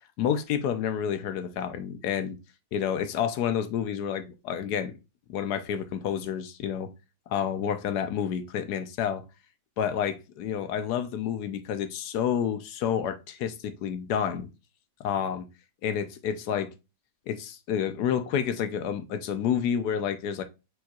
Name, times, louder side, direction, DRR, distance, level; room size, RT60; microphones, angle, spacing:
voice 1, 0.2-2.4 2.7-5.0 5.3-6.9 7.3-9.2 9.8-14.5 15.0-15.4 15.8-16.7 17.3-20.4, left 8 dB, 70° left, 1.1 m, -29 dB
6.1 x 3.6 x 2.3 m
omnidirectional pair, 1.9 m